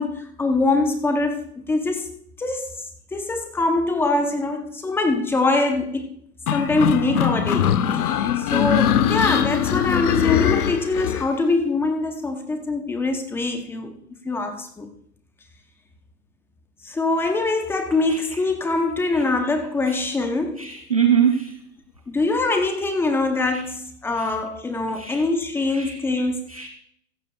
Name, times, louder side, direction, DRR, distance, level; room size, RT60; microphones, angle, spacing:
voice 1, 0.0-2.1 2.4-2.8 3.1-6.1 6.5-14.0 14.2-14.9 16.8-20.7 22.1-26.5, left 2 dB, 5° left, 0.6 m, -23 dB
sound 1, 6.5-11.3, left 9 dB, 65° left, 1.1 m, -21 dB
voice 2, 20.6-21.6 23.5-23.6 24.2-24.3 25.0-25.2 25.7-26.0 26.5-26.7, right 8 dB, 25° right, 0.3 m, -22 dB
15.5 x 14.0 x 2.2 m
hypercardioid pair, 130°, 48 cm